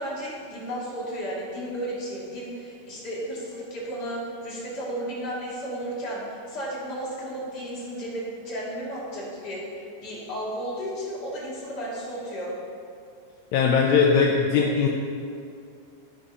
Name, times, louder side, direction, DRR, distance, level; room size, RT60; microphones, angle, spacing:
voice 1, 0.0-9.6 10.0-12.5, right 1 dB, 35° left, -6 dB, 2.5 m, -33 dB
voice 2, 13.5-14.9, left 5 dB, 75° left, 0 dB, 1.9 m, -20 dB
11.5 x 5.3 x 5.5 m, 2.4 s
omnidirectional pair, 3.4 m